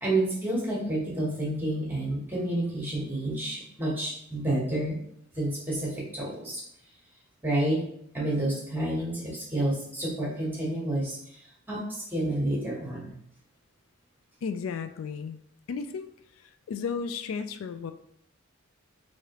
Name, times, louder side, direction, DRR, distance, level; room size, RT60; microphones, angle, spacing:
voice 1, 0.0-5.0 5.3-6.6 7.4-7.9 8.1-11.4 11.7-13.1, right 1 dB, 10° right, -5 dB, 1.1 m, -29 dB
voice 2, 14.4-15.4 15.7-16.1 16.4-17.9, left 5 dB, 80° left, 10 dB, 0.3 m, -34 dB
4.7 x 2.8 x 2.9 m, 0.69 s
head